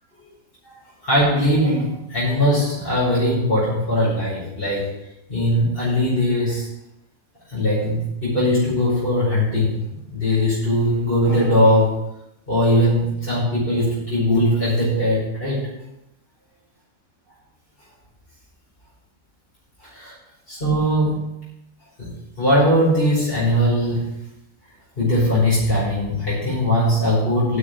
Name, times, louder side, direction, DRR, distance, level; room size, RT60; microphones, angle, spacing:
voice 1, 1.0-4.9 5.3-6.7 7.5-9.7 10.1-12.0 12.5-15.6 19.8-20.1 20.5-21.3 22.0-22.1 22.4-24.1 25.0-27.6, equal, 40° left, -8 dB, 5.3 m, -20 dB
9.8 x 7.4 x 6.5 m, 0.83 s
omnidirectional pair, 1.5 m